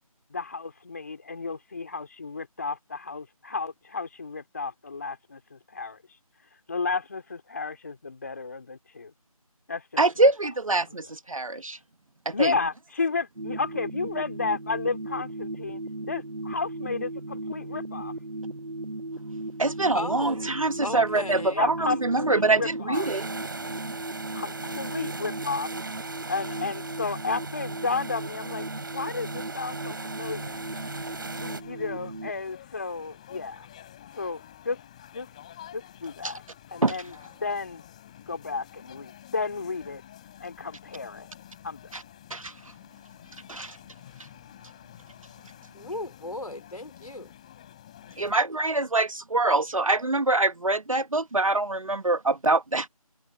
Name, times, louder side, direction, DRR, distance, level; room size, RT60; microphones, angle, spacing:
voice 1, 0.3-6.0 6.7-9.1 9.7-10.3 10.9-11.0 12.3-15.8 16.1-18.1 21.6-23.1 24.3-25.7 26.3-30.6 31.4-33.7 34.1-34.8 35.1-35.3 35.7-36.4 36.7-37.1 37.4-37.8 38.3-40.0 40.4-41.3 41.6-42.0, left 4 dB, 25° left, 2.8 m, -32 dB
voice 2, 10.0-11.8 12.2-12.5 19.6-23.3 36.2-36.3 36.8-37.0 41.9-42.0 42.3-42.5 43.5-43.8 48.2-52.9, right 2 dB, 60° right, 1.5 m, -24 dB
sound 1, 13.4-32.3, right 2 dB, 80° right, 6.1 m, -37 dB
voice 3, 19.9-20.5 20.8-21.7 45.7-47.3, left 2 dB, 75° left, 3.9 m, -36 dB
sound 2, 22.9-31.6, right 3 dB, 35° right, 5.2 m, -39 dB
sound 3, 30.2-48.3, left 11 dB, 10° left, 7.9 m, -50 dB
figure-of-eight pair, 175°, 19 cm